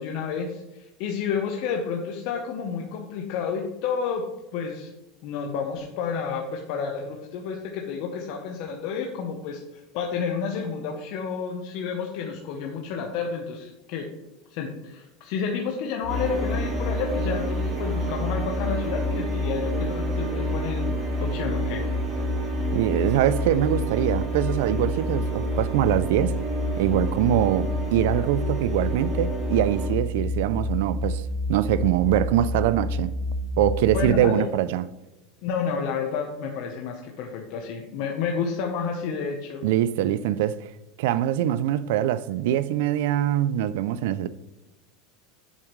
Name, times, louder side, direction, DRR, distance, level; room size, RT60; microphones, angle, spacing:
voice 1, 0.0-4.2 4.5-4.9 5.2-14.1 14.5-21.8 33.9-34.5 35.4-39.6, left 6 dB, 50° left, 0.9 m, -30 dB
sound 1, 16.0-34.1, left 1 dB, 30° left, 0.6 m, -29 dB
sound 2, 16.1-29.9, right 1 dB, 15° right, 2.1 m, -33 dB
voice 2, 22.7-26.4 26.8-33.1 33.6-34.8 39.6-40.7 41.0-44.3, right 12 dB, 70° right, 0.3 m, -23 dB
8.2 x 7.1 x 3.1 m
supercardioid pair, 165°, 0 cm